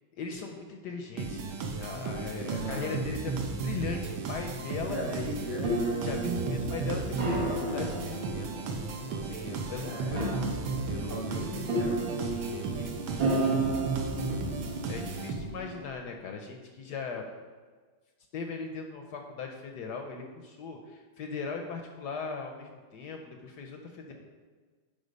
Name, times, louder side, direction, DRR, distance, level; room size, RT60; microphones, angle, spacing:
voice 1, 0.1-5.4 6.0-8.8 9.0-10.3 10.9-11.5 12.2-13.3 14.3-14.4 14.9-17.3 18.3-24.1, left 5 dB, 65° left, 3 dB, 1.1 m, -39 dB
sound 1, 1.2-15.7, right 4 dB, 80° right, 1.7 m, -35 dB
voice 2, 2.4-2.9 4.8-6.1 9.8-10.5 11.1-12.2 14.1-15.1, equal, 35° right, -4 dB, 0.9 m, -38 dB
sound 2, 5.3-15.8, right 2 dB, 65° right, 2.3 m, -33 dB
10.5 x 3.8 x 5.2 m, 1.4 s
omnidirectional pair, 2.3 m